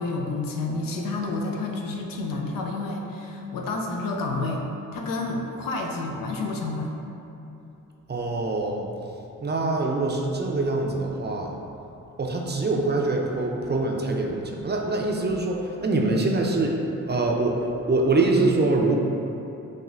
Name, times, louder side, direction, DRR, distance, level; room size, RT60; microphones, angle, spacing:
voice 1, 0.0-4.6 4.9-6.9, left 3 dB, 75° left, 1 dB, 0.6 m, -29 dB
voice 2, 8.1-8.9 9.4-11.5 12.2-16.8 17.1-17.6 17.8-19.0, right 2 dB, 30° right, 0 dB, 0.5 m, -24 dB
6.3 x 2.1 x 2.5 m, 2.9 s
supercardioid pair, 45°, 34 cm